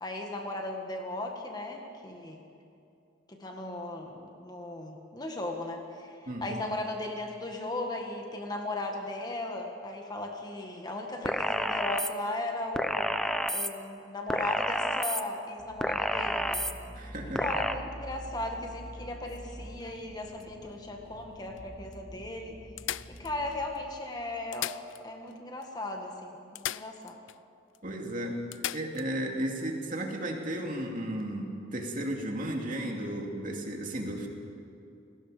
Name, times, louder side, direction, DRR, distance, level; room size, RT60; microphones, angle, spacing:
voice 1, 0.0-2.4 3.3-13.3 13.5-16.7 17.4-22.6 22.9-27.2, left 2 dB, 20° left, 2 dB, 1.7 m, -37 dB
voice 2, 6.3-6.6 17.0-17.4 27.8-34.3, right 1 dB, 40° right, 1 dB, 2.6 m, -34 dB
sound 1, 11.3-12.1 12.8-13.7 14.3-15.2 15.8-16.7 17.4-17.7, equal, ahead, 0.7 m, -29 dB
sound 2, 15.6-23.6, equal, 55° left, 5.4 m, -46 dB
sound 3, 19.3-20.9 21.6-21.7 21.9-22.0 22.8-23.8 24.4-25.4 25.6-25.7 26.6-27.4 27.7-27.8 28.5-29.1 31.1-31.2, left 12 dB, 75° left, 0.4 m, -39 dB
28.5 x 19.5 x 5.1 m, 2.6 s
head